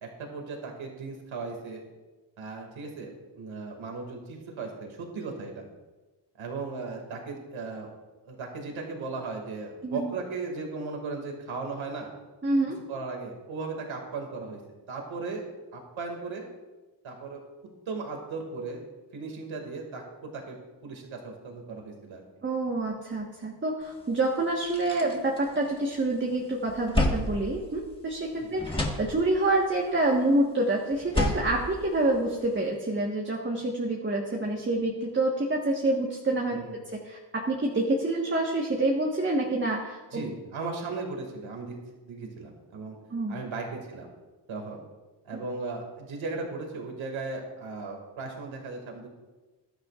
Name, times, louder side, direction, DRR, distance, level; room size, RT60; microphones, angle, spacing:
voice 1, 0.0-1.8 2.4-5.7 6.4-7.9 8.3-12.1 12.9-14.6 14.9-15.4 15.7-16.4 17.0-17.4 17.9-18.8 19.1-20.6 20.8-22.2 36.5-36.7 40.1-41.7 42.0-43.0 43.3-44.1 44.5-44.8 45.2-49.1, right 3 dB, 90° right, 2 dB, 2.4 m, -37 dB
voice 2, 12.4-12.8 22.4-40.2 43.1-43.4, right 2 dB, 25° right, -1 dB, 1.5 m, -27 dB
sound 1, 23.9-24.0 24.4-26.1 26.4-28.3 28.6-29.6 30.9-32.6, left 1 dB, 10° left, 1.6 m, -31 dB
21.0 x 12.0 x 2.5 m, 1.2 s
wide cardioid pair, 140°, 46 cm